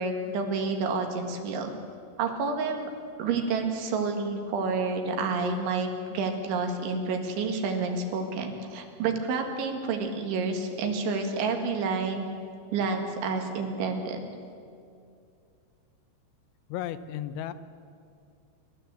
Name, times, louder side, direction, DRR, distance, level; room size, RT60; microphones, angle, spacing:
voice 1, 0.0-1.7 2.2-2.9 3.2-12.2 12.7-14.2, right 4 dB, 85° right, 4 dB, 4.3 m, -29 dB
voice 2, 16.7-17.5, left 11 dB, 85° left, 12 dB, 3.2 m, -34 dB
28.5 x 12.5 x 8.1 m, 2.4 s
omnidirectional pair, 5.3 m